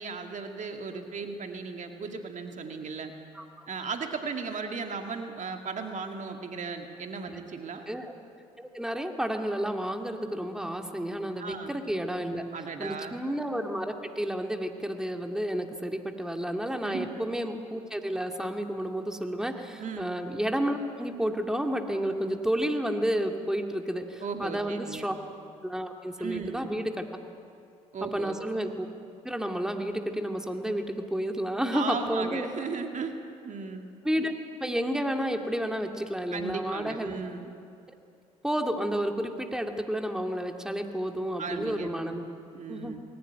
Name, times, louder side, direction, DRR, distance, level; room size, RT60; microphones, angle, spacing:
voice 1, 0.0-3.1 3.7-7.9 11.4-11.7 12.5-13.2 16.8-17.1 19.8-20.1 24.2-25.1 26.2-26.7 27.9-28.4 31.7-33.2 33.4-33.9 36.3-37.5 41.4-41.9 42.5-43.0, right 5 dB, 45° right, 4 dB, 2.2 m, -36 dB
voice 2, 3.3-3.7 7.3-7.4 7.9-8.1 8.6-12.4 12.8-25.2 25.6-27.1 28.1-28.9 29.2-32.5 34.0-37.1 38.4-42.2 42.7-43.0, equal, 5° right, 4 dB, 2.3 m, -31 dB
20.5 x 18.5 x 9.4 m, 2.4 s
hypercardioid pair, 50°, 17 cm